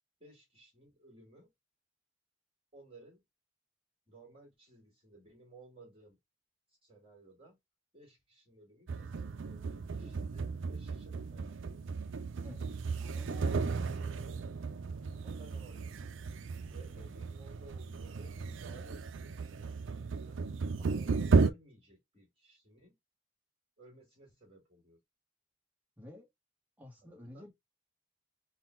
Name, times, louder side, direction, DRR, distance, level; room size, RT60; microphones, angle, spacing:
voice 1, 0.2-1.5 2.7-3.2 4.1-6.2 6.7-7.6 7.9-11.8 13.0-14.4 15.1-16.0 16.7-20.4 20.8-23.0 23.8-25.0 27.0-27.5, right 2 dB, 25° right, 2.0 m, -57 dB
sound 1, 8.9-21.5, right 4 dB, 65° right, 0.4 m, -34 dB
voice 2, 10.0-10.3 12.4-12.7 13.0-13.8 16.9-17.1 26.0-26.3 26.8-27.5, left 1 dB, 10° right, 1.2 m, -51 dB
4.1 x 2.3 x 4.4 m
head